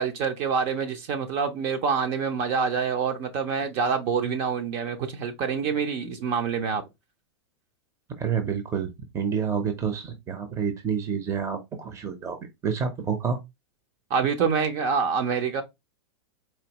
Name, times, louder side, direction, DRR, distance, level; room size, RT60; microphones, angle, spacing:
voice 1, 0.0-6.8 14.1-15.6, right 6 dB, 45° right, 0.9 m, -26 dB
voice 2, 8.2-13.4, right 6 dB, 20° right, 0.8 m, -29 dB
4.5 x 2.9 x 2.9 m
hypercardioid pair, 130°, 15 cm